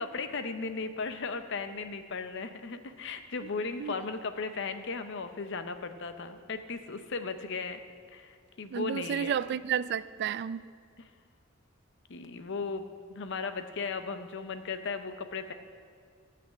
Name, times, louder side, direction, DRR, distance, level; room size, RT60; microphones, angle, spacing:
voice 1, 0.0-7.8 8.1-9.4 11.0-11.1 12.1-15.5, left 4 dB, 65° left, 9 dB, 0.7 m, -36 dB
voice 2, 8.7-10.6, right 8 dB, 55° right, 16 dB, 0.3 m, -31 dB
13.5 x 6.0 x 7.3 m, 2.1 s
head